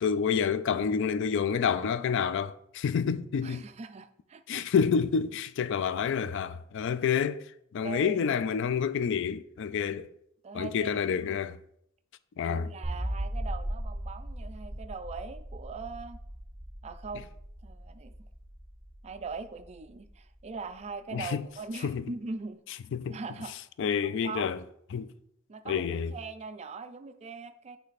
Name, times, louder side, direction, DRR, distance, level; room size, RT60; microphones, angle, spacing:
voice 1, 0.0-3.6 4.5-7.4 7.7-10.1 10.5-11.6 12.4-12.7 21.1-21.4 21.8-22.0 22.9-23.2 23.8-24.6 24.9-25.1 25.7-26.1, left 6 dB, 60° left, 0.3 m, -28 dB
voice 2, 3.4-4.6 7.8-8.2 10.4-11.4 12.4-16.2 16.8-17.3 17.6-18.3 19.0-22.6 23.1-23.5 24.0-24.5 25.5-27.8, right 4 dB, 30° right, 0.3 m, -41 dB
sound 1, 12.8-20.0, right 1 dB, ahead, 1.4 m, -38 dB
8.4 x 3.3 x 4.1 m
head